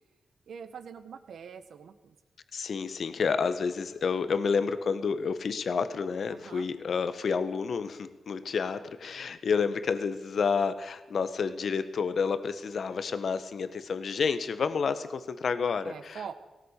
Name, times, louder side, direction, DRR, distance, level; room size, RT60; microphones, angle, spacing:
voice 1, 0.5-2.2 6.3-6.7 15.8-16.4, right 7 dB, 85° right, 10 dB, 1.7 m, -43 dB
voice 2, 2.5-16.4, left 5 dB, 65° left, 12 dB, 1.4 m, -30 dB
18.0 x 18.0 x 8.3 m, 1.1 s
wide cardioid pair, 100°, 0 cm